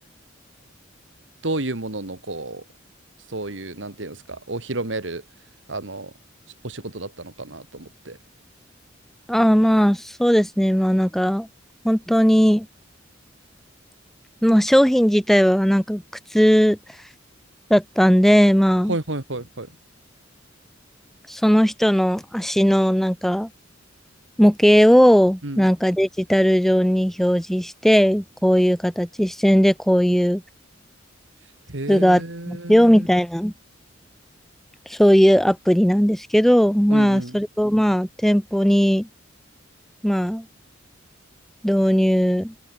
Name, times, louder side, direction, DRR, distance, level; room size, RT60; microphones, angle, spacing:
voice 1, 1.4-2.6 3.3-5.2 5.7-6.1 6.6-8.2 18.9-19.7 25.4-25.7 31.7-33.1 36.9-37.4, right 2 dB, 70° right, 2.3 m, -31 dB
voice 2, 9.3-11.5 11.8-12.7 14.4-16.0 16.3-16.8 17.7-19.0 21.3-23.5 24.4-30.4 31.9-33.5 34.9-39.1 40.0-40.4 41.6-42.5, equal, ahead, 0.9 m, -18 dB
open air
head